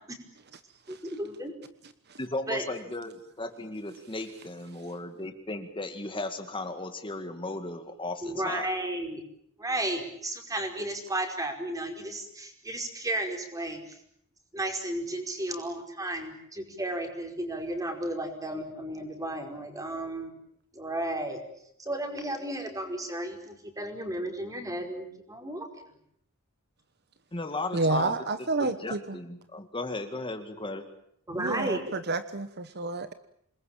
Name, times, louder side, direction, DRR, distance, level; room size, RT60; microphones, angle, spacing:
voice 1, 0.9-1.5 2.5-2.6 8.2-9.2 9.6-14.0 14.5-20.4 20.7-21.4 21.8-25.7 31.3-31.8, right 1 dB, 15° right, 5 dB, 5.0 m, -33 dB
voice 2, 2.2-8.7 27.3-28.2 28.6-30.8, left 2 dB, 25° left, 7 dB, 2.0 m, -36 dB
voice 3, 27.7-29.2 31.3-33.1, right 3 dB, 50° right, 11 dB, 1.2 m, -30 dB
27.5 x 21.0 x 9.0 m, 0.71 s
head